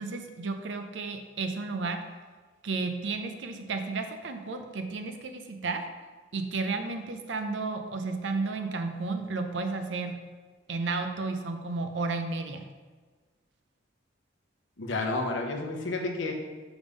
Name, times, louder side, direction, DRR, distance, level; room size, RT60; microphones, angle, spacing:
voice 1, 0.0-2.0 2.6-5.8 6.3-10.2 10.7-12.6, right 3 dB, 75° right, 6 dB, 0.6 m, -32 dB
voice 2, 14.8-16.3, left 2 dB, 80° left, 2 dB, 0.8 m, -30 dB
5.1 x 3.5 x 5.3 m, 1.4 s
head